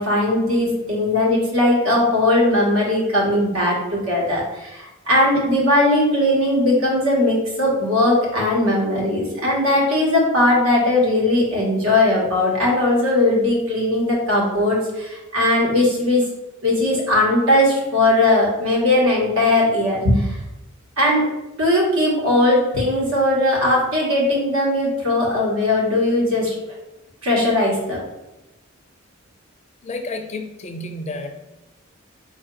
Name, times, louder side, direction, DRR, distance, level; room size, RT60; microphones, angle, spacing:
voice 1, 0.0-16.2 16.6-20.3 21.0-21.2 21.6-26.5 27.2-28.0, left 1 dB, 90° right, -3 dB, 1.4 m, -19 dB
voice 2, 29.8-31.5, left 2 dB, 35° left, 6 dB, 0.4 m, -31 dB
4.3 x 2.6 x 3.8 m, 0.98 s
head